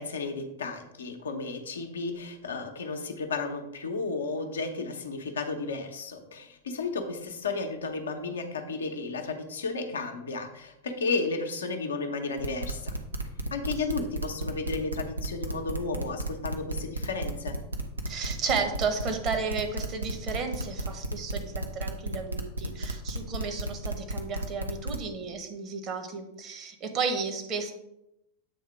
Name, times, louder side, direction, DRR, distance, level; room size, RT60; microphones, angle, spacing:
voice 1, 0.0-12.9 13.5-17.6, left 3 dB, 70° left, 4 dB, 0.8 m, -33 dB
sound 1, 12.4-25.1, right 2 dB, 80° right, 0.7 m, -32 dB
voice 2, 18.0-27.7, right 5 dB, 30° right, 6 dB, 1.1 m, -33 dB
8.1 x 3.6 x 4.8 m, 0.84 s
figure-of-eight pair, 90°, 0 cm